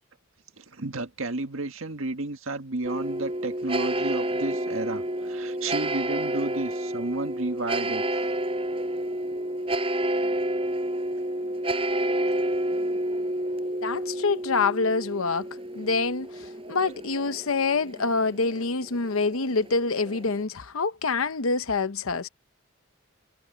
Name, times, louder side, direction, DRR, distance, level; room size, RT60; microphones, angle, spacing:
voice 1, 0.6-8.4, right 2 dB, 75° right, 1.7 m, -32 dB
sound 1, 2.8-20.4, right 1 dB, 25° right, 4.7 m, -30 dB
voice 2, 13.8-15.5 15.7-22.3, left 4 dB, 85° left, 0.9 m, -26 dB
head